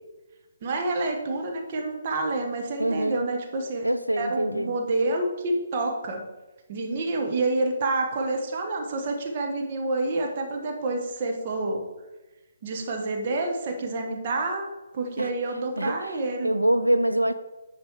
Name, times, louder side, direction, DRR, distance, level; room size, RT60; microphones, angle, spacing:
voice 1, 0.6-3.8 4.2-6.2 6.7-11.8 12.6-14.7 14.9-16.5, right 2 dB, 35° right, 2 dB, 1.4 m, -28 dB
voice 2, 2.8-3.3 3.8-4.7 15.2-15.3 15.8-16.0 16.4-17.3, right 1 dB, 90° right, 10 dB, 0.5 m, -24 dB
9.8 x 4.9 x 4.8 m, 1.1 s
figure-of-eight pair, 135°, 0 cm